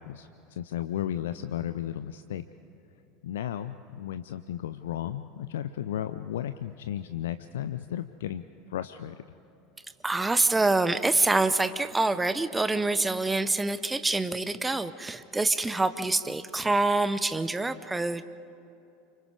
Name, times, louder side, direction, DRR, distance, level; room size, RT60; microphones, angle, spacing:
voice 1, 0.0-2.5 3.2-8.4 8.7-9.4, left 11 dB, 65° left, 12 dB, 0.5 m, -34 dB
voice 2, 10.0-18.2, right 2 dB, 10° right, 13 dB, 0.9 m, -26 dB
29.0 x 25.5 x 4.8 m, 2.8 s
figure-of-eight pair, 75°, 0 cm